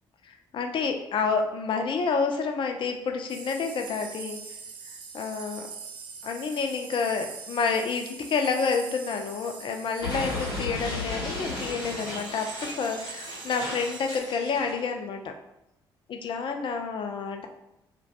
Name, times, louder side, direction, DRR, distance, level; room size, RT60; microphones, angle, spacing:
voice 1, 0.2-4.4 5.1-5.6 6.2-15.3 16.1-17.5, left 5 dB, 40° left, 4 dB, 0.4 m, -29 dB
sound 1, 3.3-14.2, right 6 dB, 40° right, 0.3 m, -43 dB
Explosion, 10.0-14.8, left 2 dB, 80° left, 0.6 m, -35 dB
2.2 x 2.1 x 2.7 m, 0.89 s
figure-of-eight pair, 40°, 13 cm